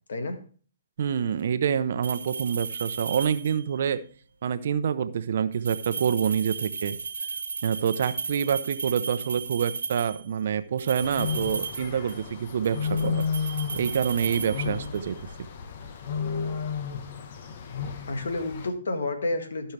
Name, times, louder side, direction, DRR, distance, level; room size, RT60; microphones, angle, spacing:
voice 1, 1.0-4.0 4.4-7.0 7.6-13.2 13.8-15.3, right 8 dB, 60° right, 12 dB, 0.7 m, -27 dB
sound 1, 2.0-3.8 5.5-10.3 10.8-12.3 12.6-15.1, right 5 dB, 80° right, 1.3 m, -35 dB
sound 2, 11.0-18.7, left 6 dB, 50° left, 1.1 m, -32 dB
voice 2, 18.1-19.7, left 2 dB, 75° left, 7 dB, 1.6 m, -30 dB
15.0 x 5.6 x 3.3 m, 0.42 s
hypercardioid pair, 135°, 0 cm